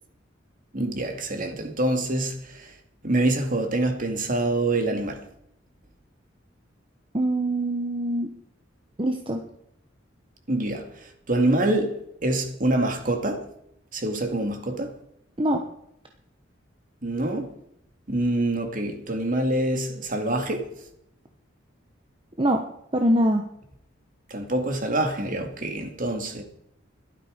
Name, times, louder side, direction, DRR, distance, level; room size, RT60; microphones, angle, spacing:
voice 1, 0.7-2.7 3.0-5.3 10.5-10.9 11.3-13.5 13.9-14.9 17.0-17.5 18.1-20.7 24.3-26.4, right 1 dB, 45° right, 2.2 m, -25 dB
voice 2, 7.1-8.3 9.0-9.4 15.4-15.6 22.4-22.7 22.9-23.4, right 1 dB, 25° right, 1.1 m, -23 dB
14.5 x 12.0 x 5.2 m
head